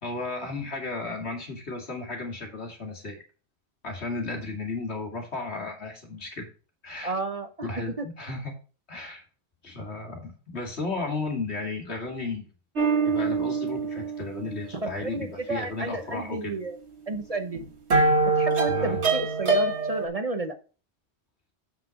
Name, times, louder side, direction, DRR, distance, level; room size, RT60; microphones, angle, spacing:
voice 1, 0.0-3.2 3.8-6.5 6.8-7.1 7.6-8.5 8.9-9.2 9.6-12.4 13.0-16.5 18.7-19.0, left 3 dB, 80° left, 2 dB, 2.5 m, -34 dB
voice 2, 7.0-7.7 8.0-8.1 14.8-16.8 17.1-17.6 18.4-20.5, right 3 dB, 35° right, 7 dB, 0.9 m, -31 dB
sound 1, 12.8-14.8 17.1-17.2 17.5-20.1, right 3 dB, 85° right, 1.7 m, -24 dB
7.6 x 5.9 x 5.1 m, 0.36 s
omnidirectional pair, 1.1 m